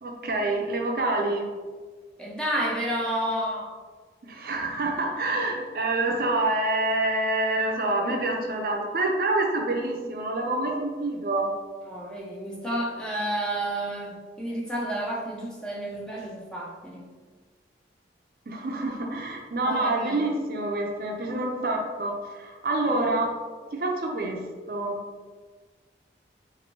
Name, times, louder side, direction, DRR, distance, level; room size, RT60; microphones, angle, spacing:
voice 1, 0.0-1.5 4.3-11.5 18.5-23.3 23.8-24.4 24.7-25.0, right 2 dB, 55° right, 1 dB, 0.5 m, -27 dB
voice 2, 2.2-3.8 11.9-17.1 19.6-20.3, right 1 dB, 5° left, -4 dB, 0.5 m, -31 dB
4.0 x 2.6 x 2.9 m, 1.4 s
head